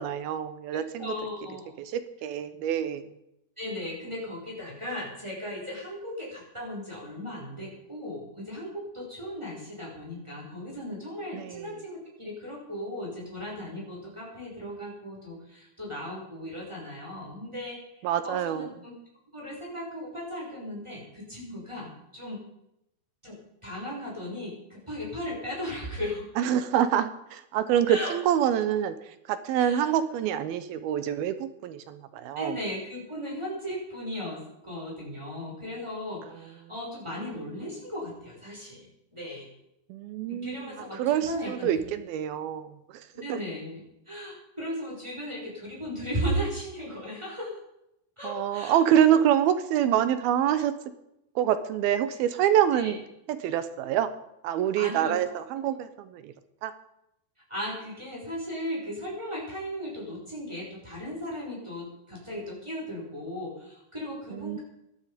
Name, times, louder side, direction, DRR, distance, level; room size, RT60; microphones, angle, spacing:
voice 1, 0.0-1.1 1.8-3.1 11.3-11.8 18.0-18.7 26.4-32.6 39.9-43.4 48.2-50.7 51.4-53.0 53.3-54.1 54.4-56.3 56.6-56.7 64.3-64.6, right 10 dB, 80° right, 12 dB, 2.8 m, -26 dB
voice 2, 0.7-1.7 3.6-18.9 19.3-22.4 23.2-26.3 27.9-28.1 29.6-29.9 32.3-39.5 40.3-41.7 43.1-47.6 48.2-48.8 49.1-49.2 52.8-52.9 54.7-55.1 57.5-64.6, equal, 5° right, -4 dB, 5.8 m, -36 dB
17.5 x 12.0 x 5.1 m, 0.82 s
omnidirectional pair, 4.4 m